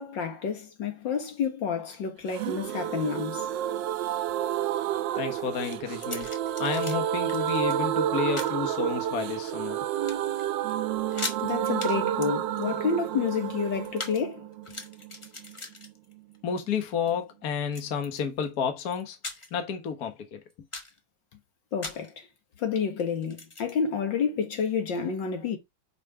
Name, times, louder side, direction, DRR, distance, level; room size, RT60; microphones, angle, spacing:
voice 1, 0.0-3.5 11.4-14.4 21.7-22.3 22.6-25.6, left 6 dB, 70° left, 2.0 m, -29 dB
sound 1, 2.3-16.2 16.5-16.6, right 11 dB, 75° right, 1.3 m, -30 dB
voice 2, 5.1-6.3 6.6-9.8 16.4-19.2 19.5-20.4, left 7 dB, 55° left, 1.5 m, -31 dB
sound 2, 5.6-7.0 7.3-7.8 8.4-8.6 9.2-9.8 10.0-10.4 10.7-10.8 11.0-11.4 11.8-12.0 12.2-14.2 14.5-16.4 16.7-17.1 17.7-18.5 18.9-19.6 20.0-20.1 20.5-21.0 21.8-22.1 23.2-23.7, left 2 dB, 25° left, 0.7 m, -40 dB
5.8 x 4.7 x 4.8 m
omnidirectional pair, 2.1 m